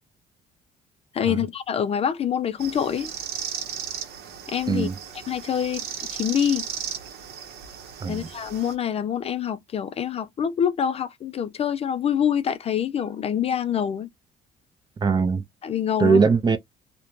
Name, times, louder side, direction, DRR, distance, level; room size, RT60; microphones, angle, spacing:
voice 1, 1.1-3.1 4.5-4.9 5.3-5.8 6.1-6.7 8.1-14.1 15.6-16.2, left 8 dB, 35° left, 0.4 m, -25 dB
sound 1, 2.6-8.7, right 8 dB, 70° right, 0.8 m, -36 dB
voice 2, 15.0-15.4 16.0-16.6, right 5 dB, 25° right, 0.5 m, -20 dB
2.5 x 2.1 x 3.0 m
cardioid pair, 110°, 17 cm